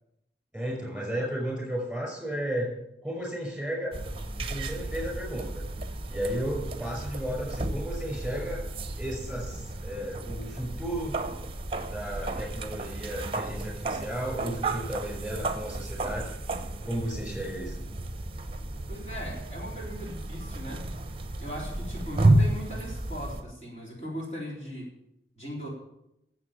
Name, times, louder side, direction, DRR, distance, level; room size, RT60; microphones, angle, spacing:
voice 1, 0.5-2.8 3.0-3.9 4.5-5.6 6.1-8.6 9.0-11.2 11.9-16.3 16.9-17.8, right 1 dB, ahead, 0 dB, 5.4 m, -33 dB
sound 1, 3.9-23.4, right 2 dB, 30° right, 0.9 m, -32 dB
voice 2, 18.9-20.9 21.4-24.9 25.4-25.7, equal, 40° left, -3 dB, 3.8 m, -38 dB
13.0 x 7.7 x 7.2 m, 0.83 s
head